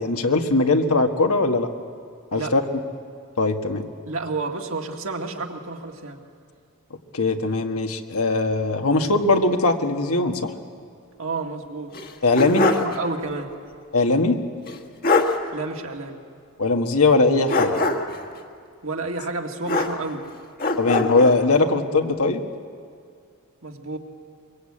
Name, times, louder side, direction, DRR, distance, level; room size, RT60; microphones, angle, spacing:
voice 1, 0.0-1.7 2.3-2.6 3.4-3.8 7.1-10.5 12.2-12.7 13.9-14.4 16.6-17.8 20.8-22.4, left 3 dB, 80° left, 5 dB, 1.6 m, -20 dB
voice 2, 4.1-6.2 11.2-12.0 12.6-13.5 15.5-16.2 18.8-20.3 23.6-24.0, right 3 dB, 65° right, 2 dB, 2.1 m, -30 dB
sound 1, 11.9-13.0 13.3-13.4 14.7-14.8 15.0-15.4 17.5-18.2 19.7-20.3 20.6-21.4, left 3 dB, 40° left, 1.5 m, -22 dB
23.5 x 23.5 x 8.7 m, 2.2 s
head